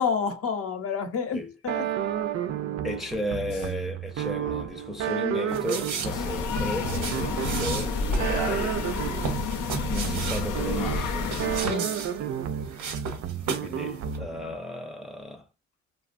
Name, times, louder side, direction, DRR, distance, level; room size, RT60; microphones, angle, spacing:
voice 1, 0.0-1.9 11.6-11.9, left 6 dB, 50° left, 0.7 m, -29 dB
sound 1, 1.7-14.6, right 9 dB, 55° right, 0.4 m, -32 dB
voice 2, 2.8-8.8 9.9-11.4 13.6-15.5, left 1 dB, ahead, 0.5 m, -34 dB
sound 2, 5.5-13.8 14.0-14.2, right 5 dB, 85° right, 0.9 m, -36 dB
sound 3, 6.0-11.6, left 4 dB, 85° left, 0.7 m, -29 dB
2.8 x 2.2 x 2.5 m
cardioid pair, 90°, 30 cm